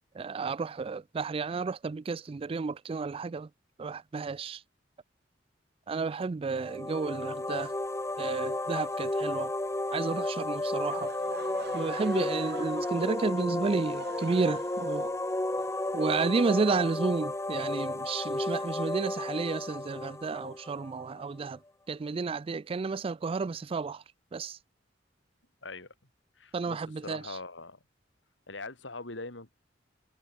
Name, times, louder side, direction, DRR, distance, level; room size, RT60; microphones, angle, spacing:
voice 1, 0.2-3.5 3.8-4.6 5.9-7.7 8.2-9.5 9.9-11.1 11.7-15.1 15.9-21.6 21.9-24.0 24.3-24.6 26.5-27.2, right 4 dB, 30° right, 0.3 m, -31 dB
sound 1, 6.5-21.2, left 1 dB, 15° left, 1.1 m, -33 dB
Laughter / Crowd, 10.9-16.8, right 4 dB, 60° right, 3.8 m, -46 dB
voice 2, 25.6-25.9 26.4-27.8 28.5-29.5, left 3 dB, 85° left, 4.1 m, -42 dB
head